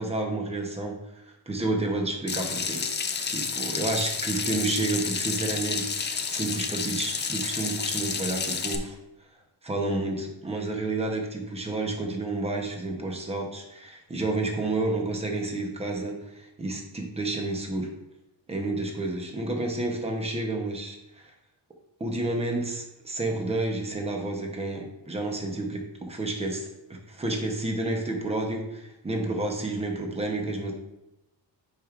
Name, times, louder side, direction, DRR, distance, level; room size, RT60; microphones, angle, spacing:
voice 1, 0.0-2.9 3.3-9.0 9.6-17.9 18.5-21.3 22.0-30.7, right 2 dB, 15° right, 2 dB, 0.8 m, -30 dB
Water tap faucet / Sink (filling or washing), 2.3-8.8, left 5 dB, 25° left, 0.4 m, -30 dB
7.5 x 5.1 x 2.5 m, 0.88 s
wide cardioid pair, 160°, 43 cm